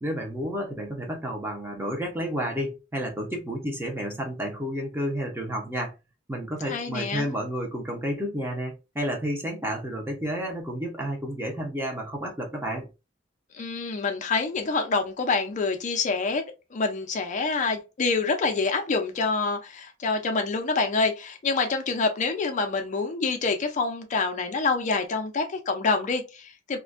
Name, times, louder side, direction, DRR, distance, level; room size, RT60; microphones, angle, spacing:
voice 1, 0.0-5.9 6.3-12.9, equal, 10° right, 0.6 m, -31 dB
voice 2, 6.6-7.3 13.5-16.4 16.7-26.8, left 4 dB, 40° left, 0.4 m, -26 dB
2.4 x 2.2 x 2.4 m
head